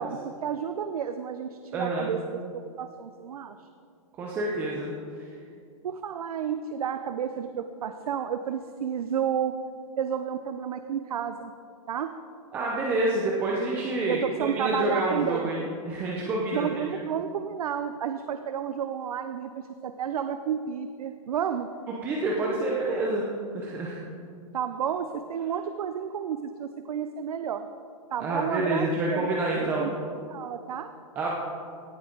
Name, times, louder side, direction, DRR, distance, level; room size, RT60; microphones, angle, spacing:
voice 1, 0.0-2.4 2.8-3.7 5.8-9.5 10.0-11.5 11.9-12.1 14.1-15.7 16.5-21.7 24.5-27.7 28.1-29.9 30.3-30.9, right 8 dB, 90° right, 9 dB, 0.6 m, -31 dB
voice 2, 1.7-2.1 4.2-5.3 12.5-16.8 21.9-23.2 23.5-24.0 28.2-29.9 31.2-31.4, right 2 dB, 10° right, -3 dB, 0.5 m, -28 dB
17.0 x 7.9 x 3.8 m, 2.4 s
hypercardioid pair, 175°, 18 cm